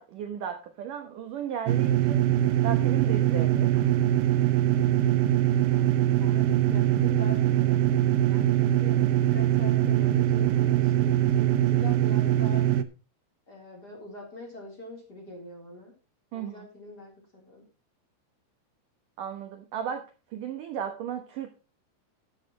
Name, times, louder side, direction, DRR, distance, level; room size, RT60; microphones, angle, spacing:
voice 1, 0.0-2.2 2.6-4.0 16.3-16.7 19.2-21.5, right 9 dB, 65° right, 6 dB, 2.2 m, -35 dB
sound 1, 1.7-12.8, right 12 dB, 85° right, 2.0 m, -23 dB
voice 2, 5.7-12.7 13.5-15.9 16.3-17.6, left 1 dB, 25° left, 0 dB, 3.6 m, -44 dB
13.5 x 10.5 x 3.0 m, 0.32 s
omnidirectional pair, 5.2 m